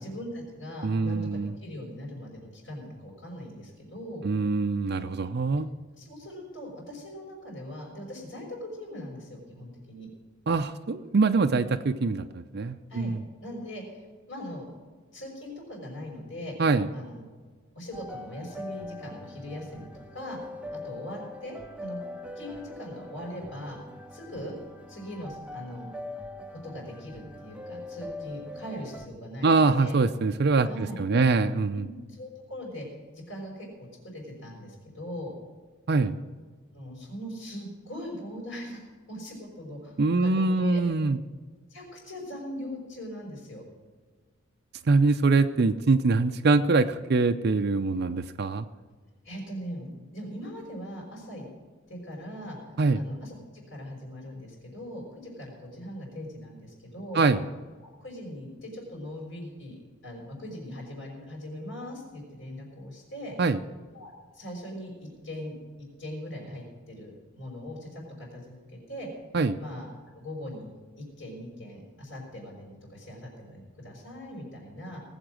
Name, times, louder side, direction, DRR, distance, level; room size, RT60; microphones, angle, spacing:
voice 1, 0.0-4.3 5.9-10.1 12.9-13.1 13.4-14.7 15.1-16.5 16.9-17.2 17.8-20.4 20.7-22.0 22.4-23.8 24.1-24.6 24.9-25.9 26.6-30.0 30.7-31.3 32.1-32.9 33.1-33.7 34.0-35.3 36.7-40.8 41.7-43.6 49.2-49.9 50.1-51.5 51.9-57.2 57.8-63.4 63.9-65.6 66.0-69.1 69.5-69.9 70.1-70.7 70.9-75.0, equal, 70° left, -4 dB, 5.3 m, -40 dB
voice 2, 0.8-1.5 4.2-5.7 10.5-13.2 16.6-16.9 29.4-31.9 35.9-36.2 40.0-41.2 44.9-48.7 52.8-53.0 57.1-57.4 63.4-63.6 69.3-69.6, right 3 dB, 50° right, 7 dB, 0.5 m, -24 dB
sound 1, 17.9-29.1, left 1 dB, 5° right, 0.6 m, -42 dB
19.5 x 8.0 x 6.2 m, 1.5 s
head